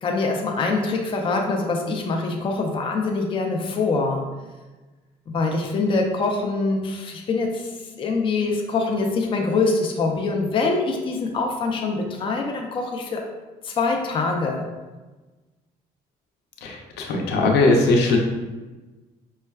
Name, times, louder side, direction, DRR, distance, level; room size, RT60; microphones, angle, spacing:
voice 1, 0.0-4.3 5.3-7.7 8.0-13.2 13.6-14.6, left 3 dB, 30° left, 1 dB, 0.5 m, -24 dB
voice 2, 16.6-18.2, left 2 dB, 75° left, 1 dB, 0.6 m, -19 dB
5.3 x 2.2 x 2.3 m, 1.2 s
cardioid pair, 110°, 17 cm